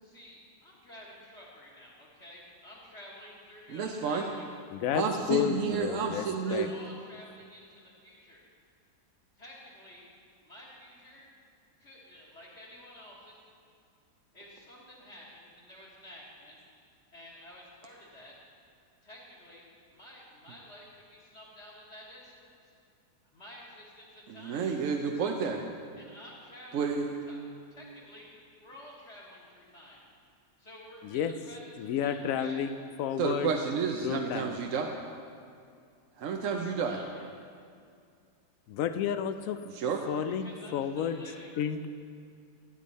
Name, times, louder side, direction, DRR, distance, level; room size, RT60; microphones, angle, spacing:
voice 1, 0.0-4.5 6.2-8.4 9.4-10.1 10.4-11.3 11.8-13.4 14.3-16.6 17.1-18.3 19.0-22.7 23.3-24.7 25.9-27.4 27.7-28.3 28.6-30.0 30.6-32.8 36.8-37.3 40.3-41.5, left 1 dB, 40° left, -5 dB, 1.9 m, -51 dB
voice 2, 3.7-4.2 4.9-6.7 24.4-25.6 26.7-27.0 33.2-34.9 36.2-37.0 39.7-40.1, right 5 dB, 60° right, 3 dB, 0.9 m, -30 dB
voice 3, 4.7-5.0 5.3-6.3 6.5-6.7 31.0-31.3 31.8-32.7 33.0-33.5 34.0-34.6 38.7-39.6 40.1-41.2 41.6-41.9, left 9 dB, 70° left, 10 dB, 0.8 m, -31 dB
13.0 x 9.4 x 4.1 m, 2.3 s
omnidirectional pair, 1.8 m